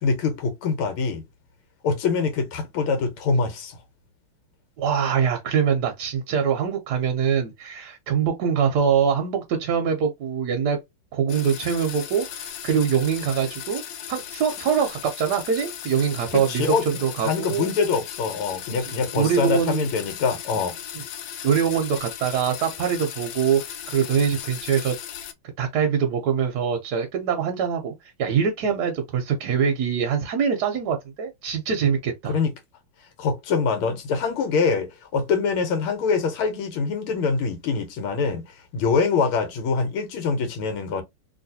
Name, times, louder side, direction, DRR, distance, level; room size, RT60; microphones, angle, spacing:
voice 1, 0.0-1.2 1.8-3.8 16.3-16.9 17.2-20.7 32.3-32.5 33.2-38.5 38.7-41.0, left 5 dB, 90° left, 1.7 m, -24 dB
voice 2, 4.8-10.8 11.1-13.8 14.1-17.7 19.2-19.9 21.4-25.0 25.6-27.9 28.2-32.4, right 7 dB, 65° right, 1.1 m, -23 dB
sound 1, 11.3-25.3, left 10 dB, 70° left, 1.1 m, -37 dB
3.1 x 2.9 x 2.7 m
omnidirectional pair, 2.3 m